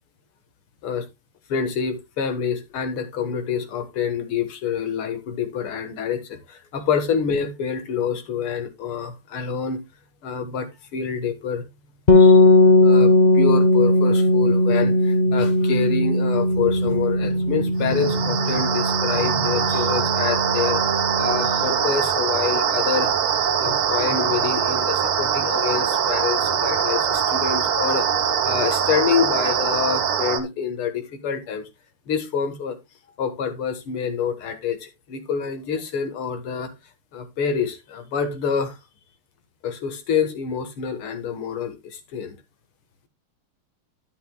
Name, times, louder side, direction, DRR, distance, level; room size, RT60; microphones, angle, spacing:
voice 1, 1.5-9.8 10.2-11.6 12.1-23.2 23.6-28.1 28.4-31.7 32.1-32.8 33.2-36.7 37.1-38.8 39.6-42.4, left 7 dB, 85° left, 2.3 m, -27 dB
sound 1, 12.1-21.8, left 2 dB, 60° left, 0.4 m, -18 dB
sound 2, 17.8-30.4, right 8 dB, 80° right, 2.0 m, -23 dB
11.0 x 9.6 x 2.2 m
omnidirectional pair, 2.3 m